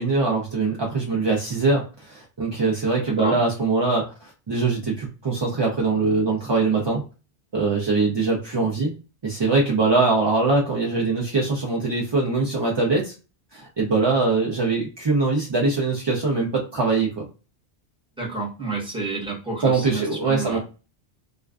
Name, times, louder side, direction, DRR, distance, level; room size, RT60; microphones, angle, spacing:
voice 1, 0.0-7.0 7.5-8.9 9.2-13.1 13.5-17.3 19.6-20.6, right 3 dB, 45° right, -2 dB, 0.3 m, -22 dB
voice 2, 18.2-20.6, right 3 dB, 5° right, -4 dB, 0.9 m, -30 dB
2.4 x 2.2 x 2.3 m, 0.32 s
omnidirectional pair, 1.1 m